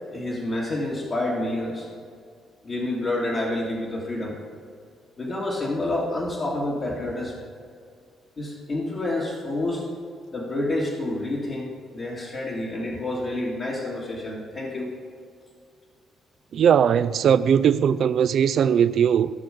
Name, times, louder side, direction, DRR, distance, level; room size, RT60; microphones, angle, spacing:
voice 1, 0.1-1.9 2.6-4.4 5.2-7.3 8.4-9.9 10.3-14.9, left 1 dB, 45° left, 2.1 m, -28 dB
voice 2, 16.5-19.3, right 8 dB, 65° right, 0.4 m, -19 dB
15.5 x 6.4 x 5.2 m
cardioid pair, 90°, 0 cm